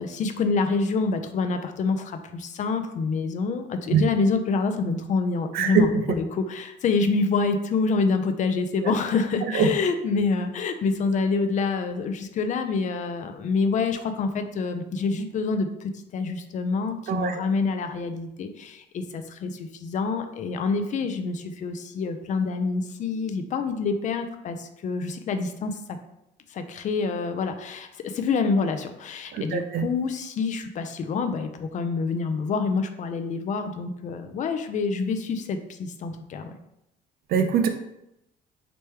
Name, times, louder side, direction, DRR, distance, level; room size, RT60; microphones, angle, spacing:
voice 1, 0.0-26.0 26.5-36.5, left 4 dB, 45° left, 8 dB, 0.4 m, -27 dB
voice 2, 5.5-6.0 9.5-9.7 17.1-17.3 29.3-29.8 37.3-37.7, right 6 dB, 65° right, 7 dB, 0.5 m, -22 dB
3.3 x 3.0 x 3.2 m, 0.84 s
cardioid pair, 110°, 17 cm